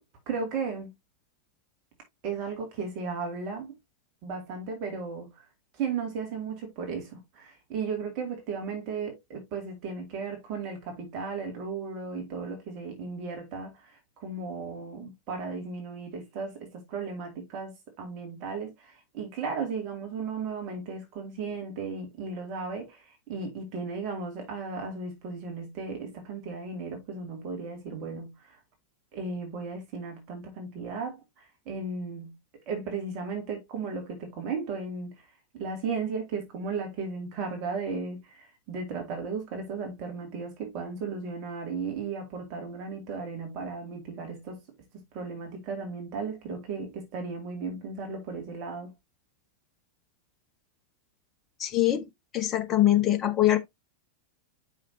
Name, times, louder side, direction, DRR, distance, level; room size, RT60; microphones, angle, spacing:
voice 1, 0.3-0.9 2.2-3.8 4.2-5.4 5.8-28.6 29.1-32.3 32.7-35.2 35.5-44.6 45.1-48.9, right 4 dB, 40° right, 2.5 m, -35 dB
voice 2, 51.6-52.1 52.3-53.6, left 13 dB, 30° left, 1.1 m, -23 dB
7.6 x 5.6 x 2.8 m
figure-of-eight pair, 90°, 0 cm